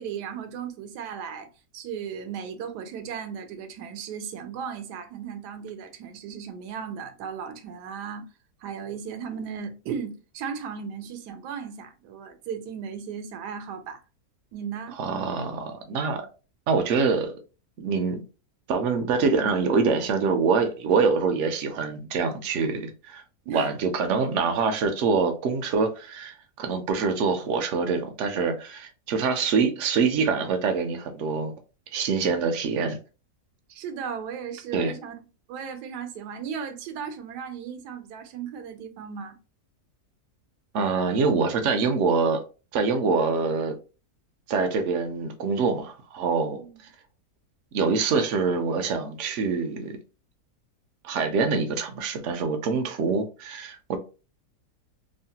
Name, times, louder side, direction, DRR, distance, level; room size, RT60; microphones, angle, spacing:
voice 1, 0.0-8.3 8.6-14.0 14.5-15.0 23.5-23.7 33.7-35.2 35.5-39.4 46.6-46.8, right 7 dB, 90° right, 1.2 m, -36 dB
voice 2, 15.0-16.2 16.7-17.3 17.8-18.2 18.7-31.5 31.9-33.0 34.7-34.9 40.7-42.4 42.7-43.7 44.5-46.6 47.7-49.9 51.0-54.0, right 4 dB, 70° right, 0.7 m, -25 dB
3.0 x 2.1 x 2.7 m
omnidirectional pair, 1.7 m